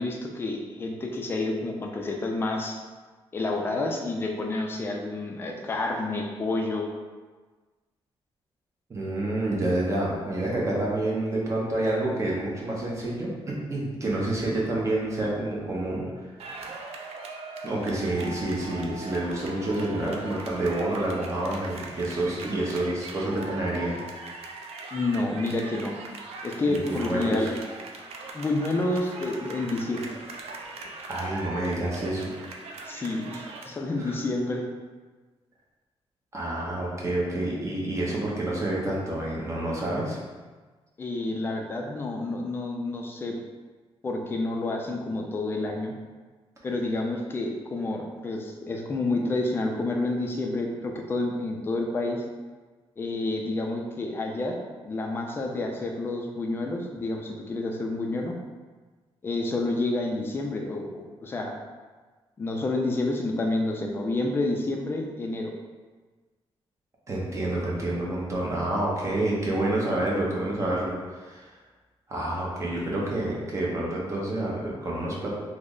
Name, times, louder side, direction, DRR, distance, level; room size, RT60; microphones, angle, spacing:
voice 1, 0.0-2.8 3.3-6.9 24.9-25.9 26.4-27.5 28.3-30.1 32.9-34.6 41.0-43.4 44.0-45.9 46.6-52.2 53.0-54.6 54.8-58.3 59.2-61.5 62.4-65.5, left 2 dB, 20° left, 1 dB, 0.3 m, -29 dB
voice 2, 8.9-16.3 17.6-24.0 26.6-27.5 31.1-32.3 34.0-34.2 36.3-40.2 67.1-71.5 72.1-75.3, right 1 dB, 30° right, -4 dB, 0.7 m, -28 dB
sound 1, 16.4-33.7, right 3 dB, 80° right, 0.4 m, -40 dB
3.1 x 2.0 x 3.7 m, 1.4 s
wide cardioid pair, 160°, 10 cm